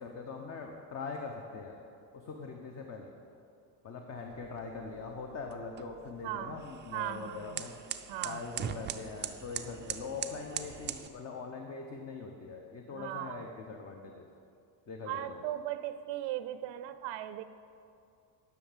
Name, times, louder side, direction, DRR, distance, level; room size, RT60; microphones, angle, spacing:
voice 1, 0.0-1.7 2.1-3.1 3.8-7.7 8.2-14.3 14.9-15.4, left 4 dB, 40° left, 2 dB, 0.9 m, -42 dB
sound 1, 4.3-11.1, right 9 dB, 30° right, 0.3 m, -42 dB
voice 2, 6.2-6.6 6.9-7.6 8.1-8.5 12.9-13.5 15.1-17.4, right 13 dB, 80° right, 12 dB, 0.6 m, -38 dB
11.0 x 6.0 x 7.2 m, 2.5 s
cardioid pair, 150°, 42 cm